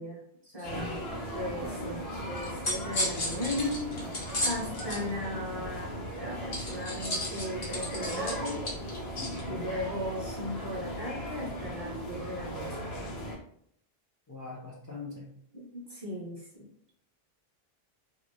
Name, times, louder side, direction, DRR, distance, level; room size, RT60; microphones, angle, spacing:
voice 1, 0.0-4.0 4.4-8.7 9.5-12.8 15.5-16.7, left 1 dB, 25° right, -4 dB, 0.9 m, -37 dB
sound 1, 0.6-13.4, equal, 85° left, 1.1 m, -38 dB
voice 2, 0.6-1.0 9.1-9.7 14.3-15.3, left 4 dB, 30° left, -5 dB, 0.4 m, -42 dB
sound 2, 2.4-5.0 6.5-9.4, left 1 dB, 60° left, 1.0 m, -34 dB
2.6 x 2.5 x 3.1 m, 0.69 s
omnidirectional pair, 1.0 m